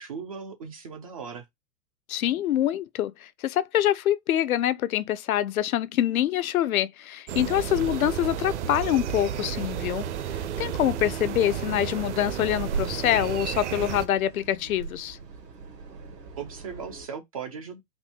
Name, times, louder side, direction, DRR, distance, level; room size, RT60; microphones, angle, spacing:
voice 1, 0.0-1.5 16.4-17.8, right 6 dB, 25° right, 0.4 m, -38 dB
voice 2, 2.1-10.1 10.6-15.2, left 12 dB, 60° left, 0.6 m, -25 dB
sound 1, 7.3-14.1, right 9 dB, 45° right, 0.8 m, -32 dB
sound 2, 7.5-17.1, right 5 dB, 75° right, 1.7 m, -42 dB
4.4 x 2.7 x 4.3 m
figure-of-eight pair, 110°, 50 cm